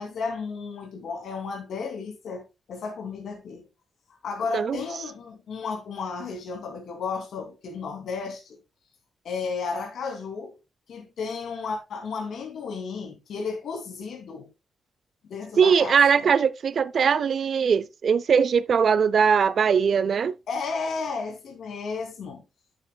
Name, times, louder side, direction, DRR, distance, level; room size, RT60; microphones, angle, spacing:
voice 1, 0.0-3.7 4.2-8.6 9.2-10.5 10.9-14.5 15.3-16.0 20.5-22.4, left 5 dB, 75° left, 2.5 m, -33 dB
voice 2, 15.6-20.3, right 6 dB, 55° right, 0.4 m, -21 dB
10.0 x 8.1 x 2.2 m
wide cardioid pair, 130°, 0 cm